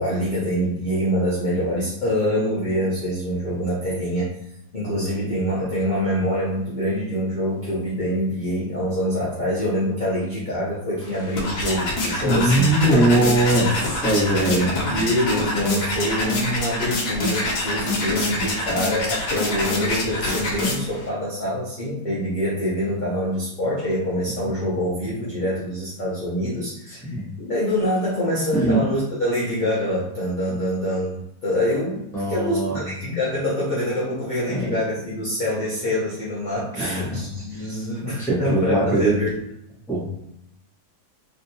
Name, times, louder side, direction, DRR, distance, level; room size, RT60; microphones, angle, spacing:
voice 1, 0.0-4.3 4.7-13.7 14.4-14.5 14.8-39.4, equal, 40° left, -9 dB, 0.8 m, -25 dB
sound 1, 11.0-21.1, left 2 dB, 80° left, 1.3 m, -26 dB
voice 2, 12.2-14.8 24.3-24.4 26.9-27.3 28.5-28.8 32.1-33.2 34.5-34.8 36.7-37.6 38.2-39.1 39.9-40.1, right 1 dB, ahead, -9 dB, 1.2 m, -21 dB
3.4 x 2.7 x 2.8 m, 0.81 s
omnidirectional pair, 1.7 m